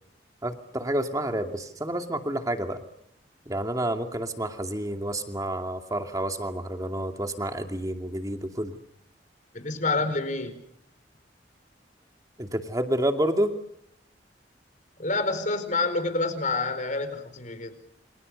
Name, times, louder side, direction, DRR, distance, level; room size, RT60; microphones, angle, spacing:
voice 1, 0.4-2.8 3.5-8.8 12.4-13.5, right 1 dB, 20° right, 5 dB, 2.5 m, -29 dB
voice 2, 9.5-10.6 15.0-17.7, left 3 dB, 45° left, 10 dB, 4.5 m, -28 dB
29.0 x 25.5 x 6.8 m, 0.73 s
head